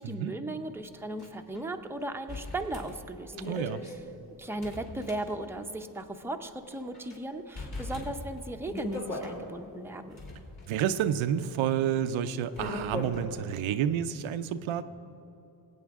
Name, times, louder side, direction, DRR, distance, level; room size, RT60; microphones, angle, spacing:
voice 1, 0.0-4.0 4.4-10.2, right 1 dB, 5° right, 5 dB, 0.6 m, -37 dB
sound 1, 1.2-1.3 1.5-1.6 2.3-5.7 6.0-6.1 6.7-7.2 7.6-9.4 10.0-13.3, left 2 dB, 50° left, 3.0 m, -39 dB
voice 2, 3.4-3.8 10.7-14.8, right 9 dB, 90° right, 10 dB, 0.6 m, -29 dB
23.0 x 8.6 x 3.6 m, 2.9 s
cardioid pair, 110°, 46 cm